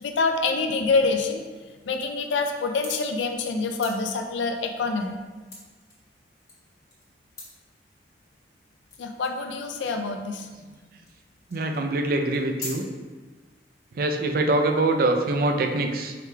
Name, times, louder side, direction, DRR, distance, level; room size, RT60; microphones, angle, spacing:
voice 1, 0.0-1.4 1.9-5.2 9.0-10.5, left 4 dB, 90° left, 4 dB, 0.4 m, -26 dB
sound 1, 2.7-3.2 3.5-5.9 6.3-7.0 7.4-7.5 8.2-8.3 8.9-9.4 9.7-10.0 10.6-10.7 11.1-11.2 11.5-11.9 12.2-12.7, left 3 dB, 20° left, 1.2 m, -42 dB
voice 2, 11.5-12.9 13.9-16.1, right 2 dB, 55° right, 5 dB, 0.4 m, -24 dB
4.9 x 4.8 x 2.2 m, 1.4 s
head